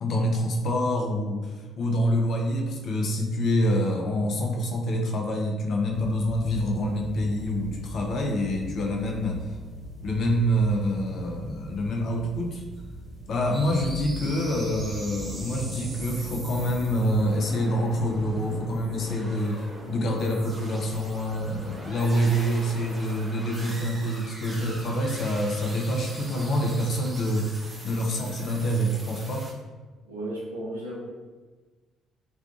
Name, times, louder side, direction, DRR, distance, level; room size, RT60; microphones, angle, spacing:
voice 1, 0.0-9.6 10.0-12.6 13.3-27.5 27.8-29.5, equal, 55° left, 1 dB, 0.4 m, -26 dB
sound 1, 5.9-14.4, right 1 dB, 45° right, 1.1 m, -41 dB
sound 2, 13.5-29.5, right 1 dB, 30° right, 0.6 m, -40 dB
voice 2, 30.0-31.1, right 1 dB, 90° right, -6 dB, 0.5 m, -34 dB
2.4 x 2.3 x 2.4 m, 1.3 s
figure-of-eight pair, 45°, 0 cm